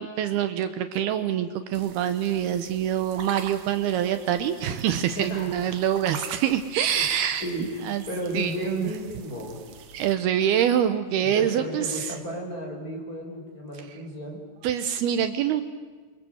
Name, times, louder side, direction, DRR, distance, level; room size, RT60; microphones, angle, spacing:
voice 1, 0.0-7.5 7.8-8.0 8.3-8.9 9.9-12.1 14.6-15.6, right 10 dB, 75° right, 9 dB, 2.8 m, -25 dB
sound 1, 1.7-10.2, right 7 dB, 60° right, 2.2 m, -44 dB
voice 2, 5.1-5.8 6.9-7.1 7.4-9.6 11.2-14.4, equal, 20° left, 0 dB, 6.0 m, -34 dB
29.0 x 25.5 x 8.0 m, 1.4 s
omnidirectional pair, 4.8 m